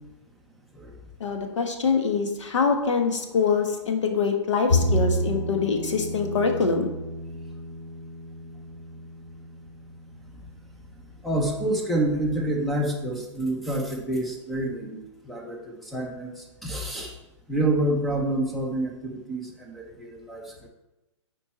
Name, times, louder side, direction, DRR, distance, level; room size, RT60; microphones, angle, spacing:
voice 1, 1.2-6.9, left 5 dB, 70° left, 5 dB, 1.4 m, -24 dB
Bowed string instrument, 4.7-11.0, left 1 dB, 50° left, 2.9 m, -30 dB
voice 2, 11.2-15.0 15.3-16.3 16.6-17.1 17.5-20.7, right 1 dB, ahead, 0 dB, 0.5 m, -28 dB
8.6 x 4.6 x 4.2 m, 1.0 s
hypercardioid pair, 165°, 16 cm